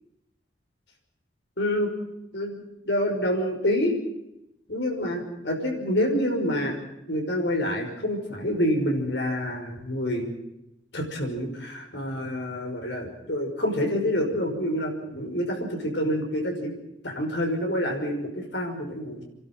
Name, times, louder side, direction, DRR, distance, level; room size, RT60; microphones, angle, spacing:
voice 1, 1.6-1.9 2.3-4.0 4.7-6.8 7.1-10.3 10.9-16.7 17.0-19.2, equal, 70° left, 2 dB, 5.8 m, -27 dB
29.5 x 12.0 x 9.3 m, 0.88 s
head